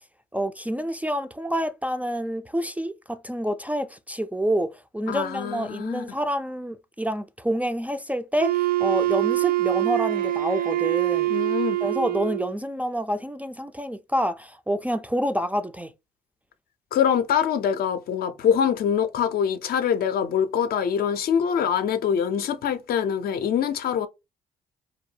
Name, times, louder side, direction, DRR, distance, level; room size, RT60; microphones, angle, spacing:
voice 1, 0.3-8.5 8.8-11.3 11.8-15.9, equal, 10° right, 0.3 m, -28 dB
voice 2, 5.1-6.0 11.3-11.8 16.9-24.1, left 8 dB, 60° left, 0.5 m, -24 dB
Wind instrument woodwind instrument, 8.4-12.5, right 16 dB, 55° right, 0.6 m, -24 dB
2.7 x 2.1 x 3.1 m
supercardioid pair, 55°, 17 cm